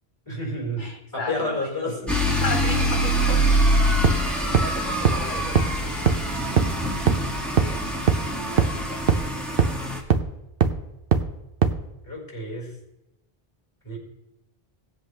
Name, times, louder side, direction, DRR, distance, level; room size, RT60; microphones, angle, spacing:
voice 1, 0.2-2.2 3.3-3.5 12.0-12.8 13.8-14.0, left 1 dB, 20° left, -3 dB, 4.7 m, -31 dB
voice 2, 0.8-1.7 2.4-3.4 4.6-5.6 7.6-7.8 8.4-9.0, left 4 dB, 50° left, 4 dB, 1.0 m, -34 dB
sound 1, 2.1-10.0, right 1 dB, ahead, 2.0 m, -24 dB
sound 2, 4.0-4.1 4.5-4.6 5.0-5.1 5.5-5.6 6.1-6.2 6.6-6.7 7.1-7.2 7.6-7.7 8.1-8.2 8.6-8.7 9.1-9.2 9.6-9.7 10.1-10.2 10.6-10.7 11.1-11.2 11.6-11.7, right 6 dB, 60° right, 1.0 m, -18 dB
18.0 x 7.8 x 3.3 m, 0.90 s
omnidirectional pair, 1.1 m